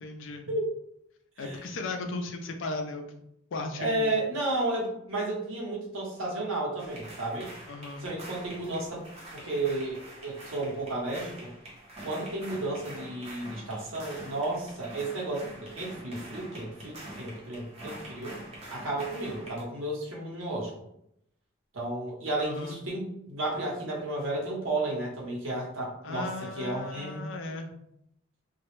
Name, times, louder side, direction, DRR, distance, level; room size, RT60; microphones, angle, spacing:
voice 1, 0.0-0.5 1.4-3.1 3.5-4.1 7.7-8.1 22.4-22.8 26.0-27.7, left 2 dB, 75° left, 5 dB, 0.4 m, -36 dB
voice 2, 3.8-7.5 8.0-9.0 9.3-11.5 12.0-18.3 18.7-20.7 21.7-27.2, right 2 dB, 85° right, -3 dB, 0.8 m, -32 dB
sound 1, 6.8-19.6, right 1 dB, 30° right, 0.6 m, -45 dB
2.2 x 2.0 x 3.0 m, 0.75 s
head